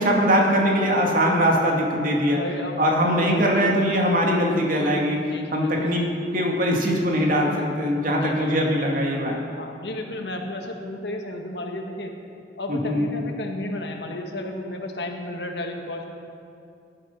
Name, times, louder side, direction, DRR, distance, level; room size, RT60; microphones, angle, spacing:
voice 1, 0.0-2.4 2.8-6.1 6.3-9.4 12.7-13.1, equal, 50° right, 0 dB, 2.3 m, -21 dB
voice 2, 2.4-3.6 5.3-5.5 5.8-5.9 6.7-6.9 8.2-8.5 9.6-12.1 12.5-16.1, left 1 dB, 70° left, 3 dB, 1.5 m, -33 dB
17.5 x 11.5 x 5.6 m, 2.5 s
head